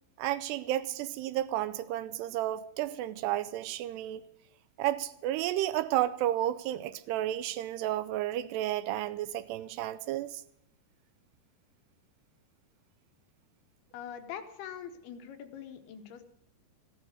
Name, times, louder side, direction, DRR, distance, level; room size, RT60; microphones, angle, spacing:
voice 1, 0.2-4.2 4.8-10.4, right 13 dB, 80° right, 2.6 m, -32 dB
voice 2, 13.9-16.2, left 8 dB, 70° left, 2.9 m, -43 dB
14.5 x 11.0 x 6.4 m
omnidirectional pair, 5.0 m